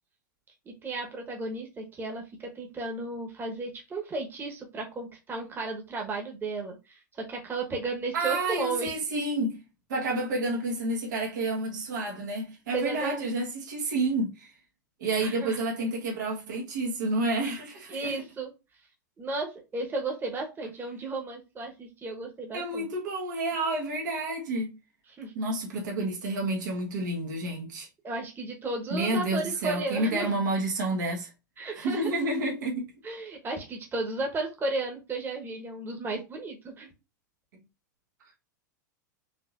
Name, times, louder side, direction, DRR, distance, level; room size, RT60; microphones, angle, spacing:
voice 1, 0.6-8.9 12.7-13.3 15.2-15.6 17.9-18.5 19.2-22.9 25.2-25.3 28.0-30.3 31.6-32.1 33.0-36.9, right 3 dB, 20° right, 1.2 m, -34 dB
voice 2, 8.1-9.6 9.9-14.5 15.0-18.2 22.5-24.8 25.3-27.9 28.9-31.3 31.8-32.9, right 2 dB, 70° right, 1.3 m, -29 dB
5.0 x 2.9 x 2.5 m
hypercardioid pair, 100°, 10 cm